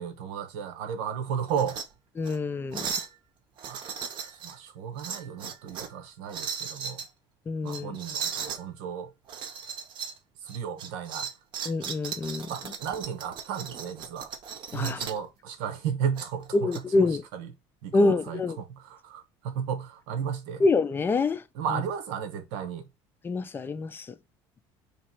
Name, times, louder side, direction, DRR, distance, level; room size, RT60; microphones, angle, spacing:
voice 1, 0.0-1.8 3.7-4.0 4.3-7.0 7.6-9.1 10.4-11.3 12.5-14.3 14.7-17.1 17.3-17.5 17.8-20.6 21.5-22.8, right 7 dB, 90° right, 0.9 m, -34 dB
sound 1, 1.5-1.9 2.2-2.4 2.7-3.1 3.6-4.6 5.0-6.0 6.3-7.1 7.7-8.6 9.3-10.2 10.5-15.2 16.2-16.8, right 7 dB, 45° right, 0.7 m, -37 dB
voice 2, 2.2-2.9 7.5-8.0 11.7-12.5 14.7-15.0 16.5-17.2 17.9-18.6 20.6-21.4 21.7-21.8 23.2-24.1, left 3 dB, 20° left, 0.4 m, -26 dB
3.1 x 2.9 x 4.5 m
cardioid pair, 145°, 11 cm